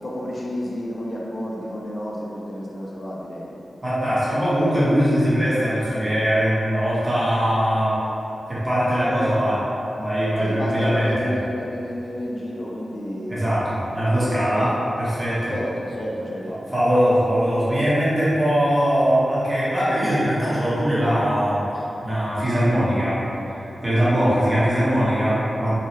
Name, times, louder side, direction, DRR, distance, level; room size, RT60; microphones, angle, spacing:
voice 1, 0.0-3.5 10.4-13.4 14.5-14.7 15.5-16.5 24.5-24.7, equal, 40° left, -4 dB, 0.5 m, -30 dB
voice 2, 3.8-7.9 8.5-9.6 10.0-11.3 13.3-14.7 15.0-15.6 16.7-23.2 23.8-25.8, equal, 15° right, -11 dB, 0.9 m, -21 dB
3.0 x 2.3 x 2.8 m, 2.9 s
wide cardioid pair, 135°, 0 cm